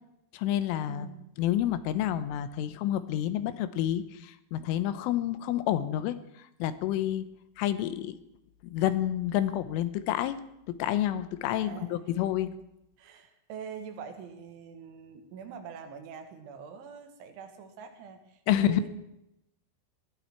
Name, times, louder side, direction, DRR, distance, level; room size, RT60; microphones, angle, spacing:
voice 1, 0.3-1.1 1.4-6.2 6.6-7.3 7.6-8.2 8.6-10.4 10.8-12.6 18.5-18.8, left 12 dB, 85° left, 12 dB, 3.5 m, -29 dB
voice 2, 0.9-1.3 11.6-12.1 13.0-18.9, right 6 dB, 75° right, 6 dB, 4.0 m, -44 dB
20.0 x 15.5 x 4.5 m, 0.83 s
omnidirectional pair, 5.6 m